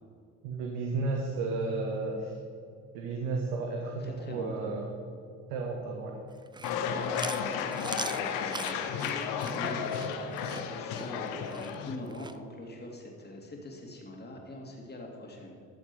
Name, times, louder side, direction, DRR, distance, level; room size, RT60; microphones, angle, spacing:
voice 1, 0.4-2.3 2.9-4.9 5.5-6.2, right 3 dB, 80° right, 2 dB, 1.2 m, -33 dB
voice 2, 4.0-4.7 6.7-15.6, left 1 dB, 30° left, 0 dB, 2.6 m, -44 dB
Chewing mastication, 6.4-12.4, right 4 dB, 15° right, 0.5 m, -41 dB
sound 1, 6.6-12.0, left 7 dB, 75° left, 1.0 m, -33 dB
13.0 x 7.1 x 5.4 m, 2.5 s
hypercardioid pair, 60°, 34 cm